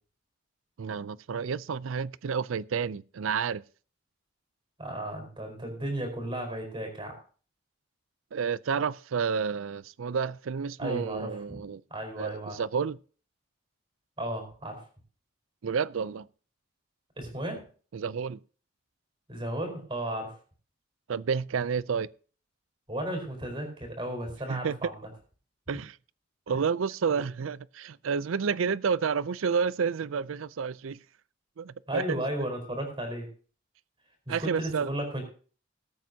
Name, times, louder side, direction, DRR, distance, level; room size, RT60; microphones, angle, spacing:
voice 1, 0.8-3.6 8.3-11.8 12.2-13.0 15.6-16.3 17.9-18.4 21.1-22.1 24.5-24.8 25.7-25.9 26.5-31.0 31.6-32.2 34.3-34.9, right 6 dB, 80° right, 0.4 m, -30 dB
voice 2, 4.8-7.1 10.8-11.6 11.9-12.6 14.2-14.8 17.2-17.6 19.3-20.3 22.9-25.0 27.1-27.2 31.9-33.3 34.3-35.2, right 1 dB, 25° right, 4.5 m, -34 dB
21.0 x 8.9 x 2.8 m
head